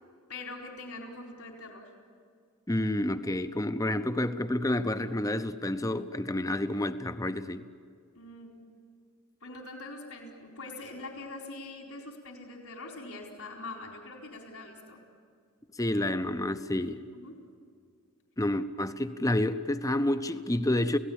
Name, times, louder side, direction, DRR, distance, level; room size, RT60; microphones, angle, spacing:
voice 1, 0.3-1.8 8.1-8.5 9.4-15.0 17.1-17.3, left 2 dB, 80° left, 0 dB, 4.3 m, -43 dB
voice 2, 2.7-7.7 15.8-17.0 18.4-21.0, left 1 dB, 15° left, 11 dB, 0.7 m, -29 dB
29.5 x 17.5 x 8.8 m, 2.1 s
head